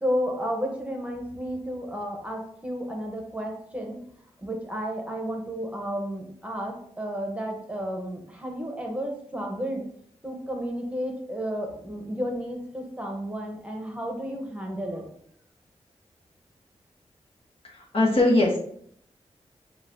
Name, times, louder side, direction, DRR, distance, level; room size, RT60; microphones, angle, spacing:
voice 1, 0.0-4.0 4.4-9.8 10.2-15.0, equal, 10° right, 1 dB, 1.0 m, -32 dB
voice 2, 17.6-18.6, left 2 dB, 50° left, -2 dB, 1.3 m, -21 dB
7.2 x 2.5 x 2.7 m, 0.64 s
cardioid pair, 65°, 12 cm